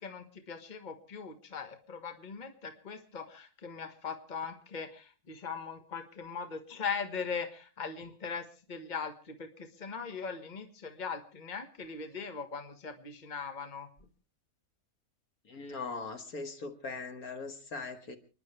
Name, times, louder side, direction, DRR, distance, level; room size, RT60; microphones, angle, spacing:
voice 1, 0.0-13.9, left 5 dB, 30° left, 7 dB, 1.5 m, -40 dB
voice 2, 15.5-18.2, left 4 dB, 65° left, 7 dB, 2.1 m, -40 dB
29.5 x 10.5 x 3.3 m, 0.37 s
omnidirectional pair, 1.7 m